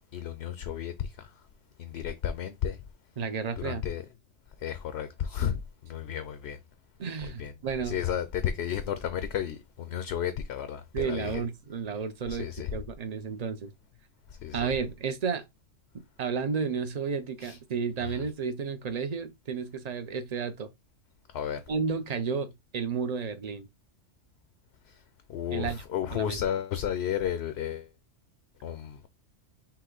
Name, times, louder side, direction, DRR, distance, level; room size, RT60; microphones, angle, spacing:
voice 1, 0.1-1.3 1.8-2.8 3.6-4.0 4.6-6.6 7.2-7.5 7.8-11.4 12.3-12.7 14.3-14.7 17.4-17.6 18.0-18.2 21.3-21.6 24.9-25.0 25.3-27.9 28.6-29.0, left 9 dB, 65° left, 0.8 m, -33 dB
voice 2, 3.2-3.8 7.0-8.0 10.9-13.7 14.5-15.4 16.2-20.7 21.7-23.7 25.5-25.8 26.1-26.4, right 6 dB, 45° right, 0.6 m, -32 dB
5.7 x 2.2 x 3.8 m
omnidirectional pair, 1.3 m